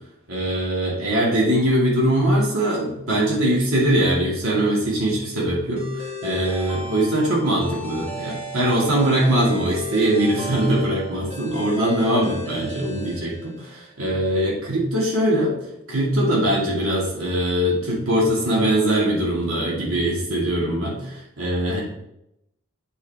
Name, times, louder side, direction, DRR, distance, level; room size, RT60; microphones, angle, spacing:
voice 1, 0.3-15.6 15.9-21.8, right 1 dB, 80° right, -4 dB, 2.3 m, -22 dB
sound 1, 5.8-13.9, left 1 dB, 30° right, 1.6 m, -35 dB
8.0 x 5.6 x 3.6 m, 0.82 s
head